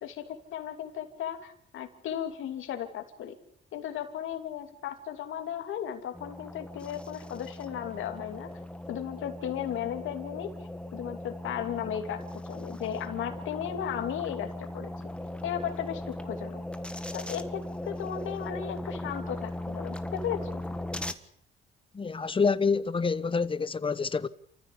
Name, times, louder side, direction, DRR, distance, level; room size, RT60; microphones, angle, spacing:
voice 1, 0.0-3.4 3.7-8.5 8.9-10.5 10.9-14.9 15.4-16.6 17.1-20.6, left 9 dB, 80° left, 2.9 m, -35 dB
sound 1, 6.1-21.1, left 1 dB, 5° left, 1.6 m, -38 dB
voice 2, 21.9-24.3, left 5 dB, 25° left, 1.0 m, -27 dB
28.5 x 14.5 x 8.6 m
cardioid pair, 90°, 20 cm